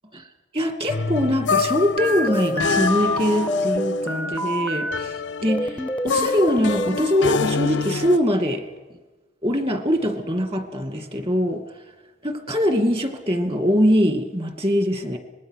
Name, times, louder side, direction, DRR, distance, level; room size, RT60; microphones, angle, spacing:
voice 1, 0.5-8.6 9.4-11.6 12.2-15.2, equal, 30° right, 7 dB, 2.3 m, -22 dB
sound 1, 0.9-8.2, left 5 dB, 85° left, 0.7 m, -27 dB
sound 2, 2.0-5.0 5.5-7.1, equal, 10° left, 0.6 m, -27 dB
25.5 x 20.5 x 6.5 m, 1.2 s
head